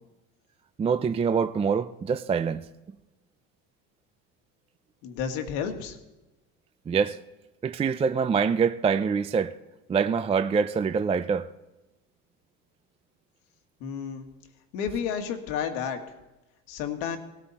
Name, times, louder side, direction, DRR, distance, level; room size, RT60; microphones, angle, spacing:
voice 1, 0.8-2.6 6.9-7.2 7.6-9.5 9.9-11.5, right 6 dB, 15° right, 0.4 m, -25 dB
voice 2, 5.0-6.0 13.8-14.3 14.7-16.0 16.7-17.2, left 7 dB, 75° left, 2.0 m, -31 dB
18.0 x 13.5 x 4.2 m
supercardioid pair, 90°, 37 cm